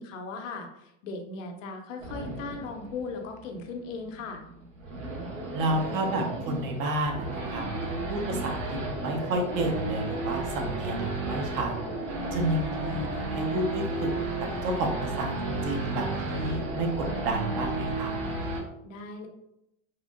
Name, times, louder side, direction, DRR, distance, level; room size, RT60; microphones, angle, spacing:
voice 1, 0.0-4.4 18.8-19.3, left 4 dB, 85° left, 4 dB, 0.7 m, -38 dB
Race car auto racing / Idling / Accelerating revving vroom, 2.0-18.6, right 2 dB, 75° right, 1.1 m, -33 dB
voice 2, 5.5-7.6 8.1-11.7 12.3-14.1 14.6-18.2, right 1 dB, 55° right, 2 dB, 0.9 m, -30 dB
3.5 x 2.5 x 2.3 m, 0.82 s
supercardioid pair, 105°, 38 cm